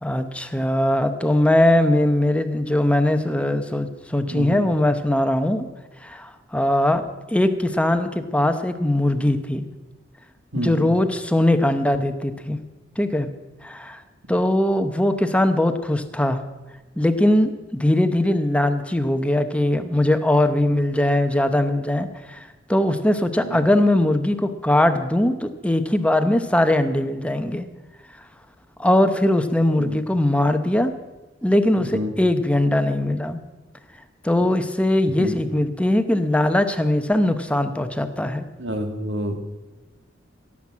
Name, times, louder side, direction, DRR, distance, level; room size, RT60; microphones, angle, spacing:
voice 1, 0.0-5.7 6.0-9.6 10.5-12.6 13.0-13.3 13.6-14.0 14.3-16.4 17.0-27.6 28.8-30.9 31.4-33.4 34.2-38.5, left 1 dB, 5° left, 9 dB, 0.8 m, -20 dB
voice 2, 4.3-4.6 10.5-10.9 29.8-30.0 31.9-32.1 35.2-35.3 38.6-39.4, equal, 80° right, 6 dB, 1.6 m, -28 dB
17.0 x 7.3 x 7.4 m, 1.1 s
head